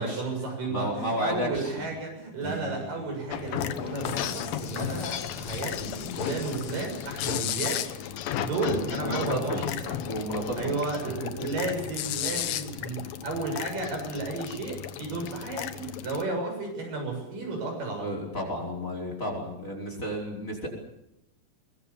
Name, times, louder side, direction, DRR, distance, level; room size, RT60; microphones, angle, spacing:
voice 1, 0.0-7.8 8.4-10.0 10.6-18.2, right 3 dB, 75° right, 2 dB, 8.6 m, -33 dB
voice 2, 0.7-1.9 8.5-8.7 9.0-9.7 10.0-10.8 11.0-11.5 18.0-20.7, equal, 20° left, 1 dB, 5.2 m, -32 dB
sound 1, 2.3-6.1, right 5 dB, 55° right, 3.3 m, -46 dB
sound 2, 3.3-16.2, left 10 dB, 85° left, 2.9 m, -34 dB
sound 3, 4.0-8.5 8.9-9.0, left 10 dB, 65° left, 1.7 m, -44 dB
23.5 x 21.5 x 7.2 m, 0.85 s
omnidirectional pair, 3.9 m